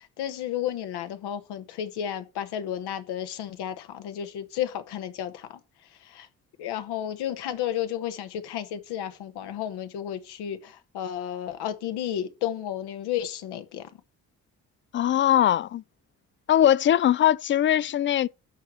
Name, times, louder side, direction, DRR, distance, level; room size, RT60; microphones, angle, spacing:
voice 1, 0.0-5.6 6.1-6.3 6.6-13.8, left 10 dB, 65° left, 1.3 m, -32 dB
voice 2, 14.9-15.8 16.5-18.3, left 11 dB, 30° left, 0.4 m, -21 dB
6.4 x 6.1 x 6.7 m
figure-of-eight pair, 45°, 42 cm